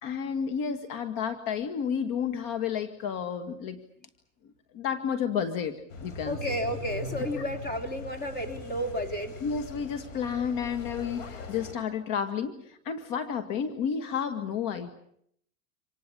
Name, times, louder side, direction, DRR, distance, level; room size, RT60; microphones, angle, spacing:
voice 1, 0.0-3.8 4.7-5.7 6.0-6.4 9.4-14.9, left 7 dB, 60° left, 8 dB, 2.1 m, -31 dB
sound 1, 5.9-11.7, left 3 dB, 75° left, 6.4 m, -41 dB
voice 2, 6.2-9.4, equal, 25° left, 6 dB, 4.0 m, -32 dB
26.5 x 19.5 x 8.7 m, 0.70 s
supercardioid pair, 120°, 39 cm